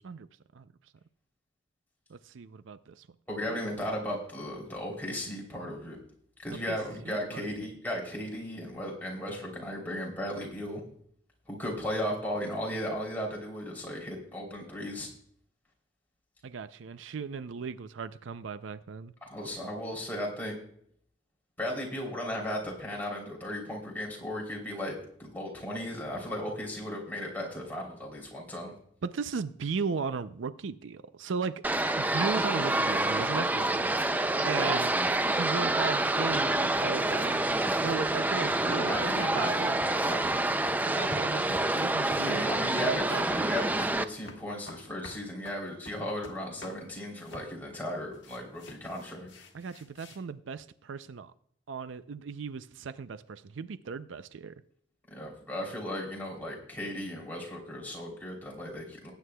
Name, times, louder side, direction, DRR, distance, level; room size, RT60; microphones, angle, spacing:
voice 1, 2.1-3.1 3.5-3.6 6.7-6.8 7.0-7.7 16.4-19.1 29.0-31.6 32.0-34.0 34.4-34.9 35.3-39.8 40.8-42.5 42.8-43.6 49.5-51.3 51.7-54.6, right 5 dB, 80° right, 13 dB, 0.5 m, -36 dB
voice 2, 3.3-6.0 6.4-10.8 11.5-15.1 19.2-20.6 21.6-28.7 38.5-40.5 42.2-49.3 55.1-59.1, equal, 10° left, -2 dB, 3.1 m, -36 dB
sound 1, 31.6-44.0, right 2 dB, 10° right, 0.3 m, -27 dB
sound 2, 37.1-37.8 38.1-38.2 38.5-38.7 38.9-39.1 39.4-39.5 39.8-40.0 40.2-40.9 41.1-41.8 42.1-43.5 43.8-44.0 44.3-46.8 47.2-47.5 48.1-50.2, left 1 dB, 70° left, 1.5 m, -47 dB
19.0 x 9.3 x 2.3 m, 0.65 s
head